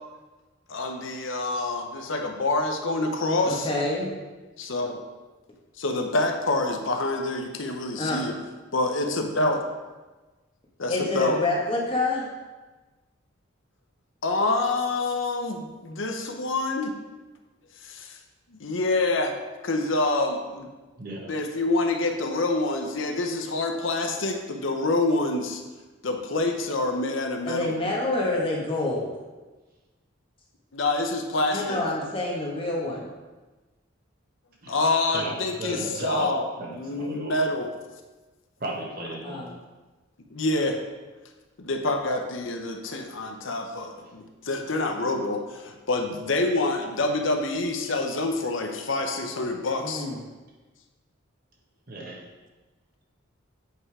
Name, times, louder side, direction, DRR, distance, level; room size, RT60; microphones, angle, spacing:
voice 1, 0.7-3.7 4.6-5.0 5.8-8.4 8.7-9.6 10.8-11.4 14.2-16.9 17.8-18.2 18.5-19.4 19.6-20.7 21.3-25.6 26.0-27.8 30.7-31.8 34.7-36.4 36.8-37.7 40.3-40.8 41.6-50.1, left 2 dB, 65° left, 4 dB, 0.8 m, -27 dB
voice 2, 3.5-4.1 7.9-8.2 10.9-12.3 27.4-29.1 31.5-33.1 39.2-39.5 49.8-50.2, left 2 dB, 25° left, -3 dB, 1.5 m, -27 dB
voice 3, 21.0-21.3 34.6-34.8 35.1-37.4 38.6-39.4 51.9-52.2, right 2 dB, 45° right, -2 dB, 1.5 m, -34 dB
7.9 x 5.4 x 4.8 m, 1.2 s
head